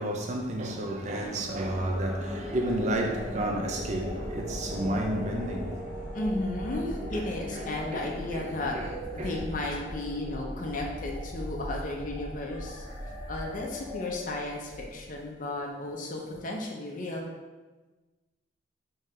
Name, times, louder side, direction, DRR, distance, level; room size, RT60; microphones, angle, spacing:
voice 1, 0.0-5.8 6.3-6.4 7.1-7.3 7.5-8.9 9.2-9.4, right 1 dB, 35° right, 0.4 m, -32 dB
sound 1, 1.1-15.2, equal, 90° right, 1.2 m, -38 dB
voice 2, 6.1-8.8 9.1-12.9 13.3-17.3, left 2 dB, 40° left, 0.5 m, -34 dB
3.7 x 2.8 x 3.1 m
head